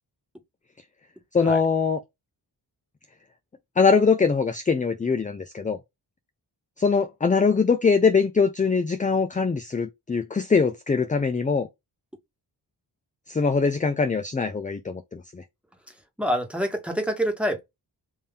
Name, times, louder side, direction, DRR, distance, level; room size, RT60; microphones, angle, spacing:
voice 1, 1.3-2.0 3.8-5.8 6.8-11.7 13.3-15.4, left 5 dB, 20° left, 0.4 m, -22 dB
voice 2, 16.2-17.6, equal, 5° right, 1.3 m, -26 dB
3.7 x 2.7 x 3.5 m
wide cardioid pair, 85°, 41 cm